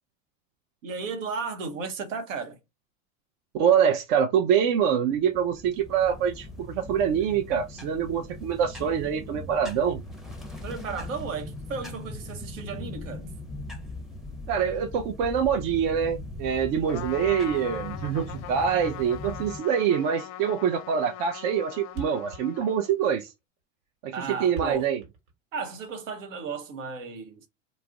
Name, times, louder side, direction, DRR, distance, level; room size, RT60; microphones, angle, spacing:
voice 1, 0.8-2.6 10.6-13.3 24.1-24.9 25.5-27.5, right 4 dB, 90° right, 0.8 m, -34 dB
voice 2, 3.5-10.0 14.5-23.3 24.0-25.0, right 8 dB, 55° right, 0.5 m, -25 dB
sound 1, 5.1-19.6, left 2 dB, ahead, 0.6 m, -40 dB
Trumpet, 16.9-23.1, left 12 dB, 45° left, 0.4 m, -41 dB
Thump thud, 21.6-21.7 21.9-25.9, right 6 dB, 70° right, 1.3 m, -41 dB
2.4 x 2.0 x 3.4 m
hypercardioid pair, 100°, 38 cm